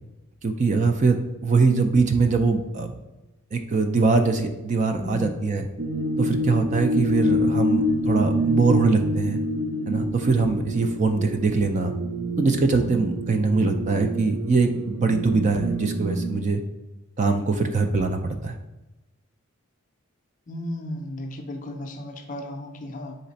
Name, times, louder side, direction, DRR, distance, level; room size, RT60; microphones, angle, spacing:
voice 1, 0.4-2.9 3.5-5.7 6.2-9.4 9.9-11.9 12.4-16.6 17.2-18.5, right 4 dB, 35° right, 6 dB, 0.3 m, -22 dB
voice 2, 5.0-5.3 20.5-23.2, left 1 dB, 35° left, 4 dB, 0.4 m, -34 dB
sound 1, 5.8-16.3, equal, 75° right, 0.6 m, -27 dB
4.0 x 3.3 x 4.0 m, 1.0 s
head